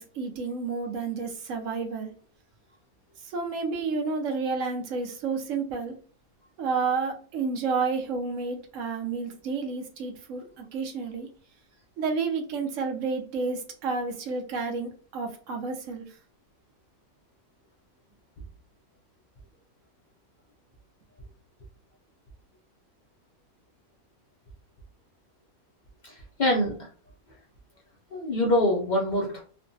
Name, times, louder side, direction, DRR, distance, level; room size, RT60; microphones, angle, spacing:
voice 1, 0.0-2.1 3.2-5.9 6.6-11.3 12.0-16.1, right 4 dB, 65° right, 3 dB, 0.9 m, -30 dB
voice 2, 26.0-26.9 28.1-29.4, left 1 dB, 80° left, -2 dB, 0.4 m, -25 dB
3.1 x 2.1 x 2.6 m, 0.41 s
omnidirectional pair, 1.6 m